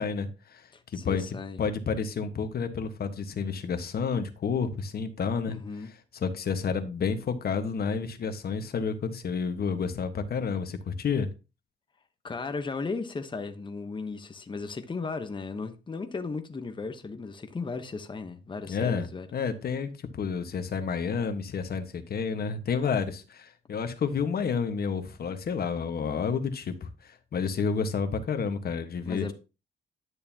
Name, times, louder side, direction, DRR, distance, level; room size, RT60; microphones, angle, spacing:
voice 1, 0.0-1.2 1.6-5.6 6.1-11.3 18.7-29.2, left 5 dB, 50° left, 1.4 m, -30 dB
voice 2, 0.7-1.6 5.5-5.9 12.2-19.3 29.1-29.3, left 4 dB, 25° left, 1.0 m, -36 dB
11.0 x 6.7 x 2.9 m
cardioid pair, 90°, 20 cm